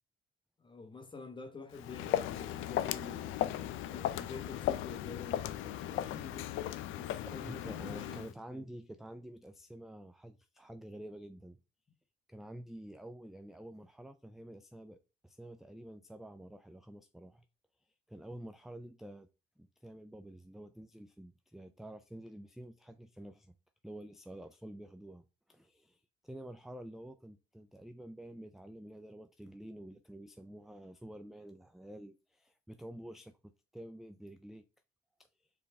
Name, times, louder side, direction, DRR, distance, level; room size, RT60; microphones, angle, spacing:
voice 1, 0.6-6.5 6.9-8.7, left 4 dB, 25° left, 0.9 m, -48 dB
Walk footsteps, 1.7-8.3, left 12 dB, 85° left, 0.4 m, -36 dB
voice 2, 7.2-11.6 12.3-15.0 15.2-17.4 18.1-19.3 19.6-23.5 23.8-34.6, right 1 dB, ahead, 0.3 m, -49 dB
4.7 x 3.3 x 3.4 m
cardioid pair, 90°, 20 cm